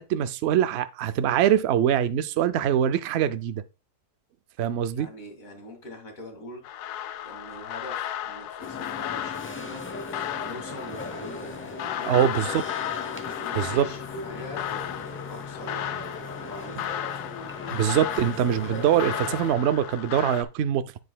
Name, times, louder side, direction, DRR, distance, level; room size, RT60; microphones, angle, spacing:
voice 1, 0.0-3.6 4.6-5.1 12.1-12.5 13.6-13.9 17.7-20.8, right 10 dB, 90° right, 0.5 m, -23 dB
voice 2, 4.9-6.6 7.2-9.9 10.4-12.4 13.2-14.6 15.3-17.2, left 1 dB, 55° left, 2.5 m, -43 dB
sound 1, 6.6-20.4, left 11 dB, 80° left, 1.1 m, -34 dB
sound 2, 8.6-19.5, left 2 dB, 20° left, 0.3 m, -38 dB
7.6 x 6.5 x 2.2 m
omnidirectional pair, 1.7 m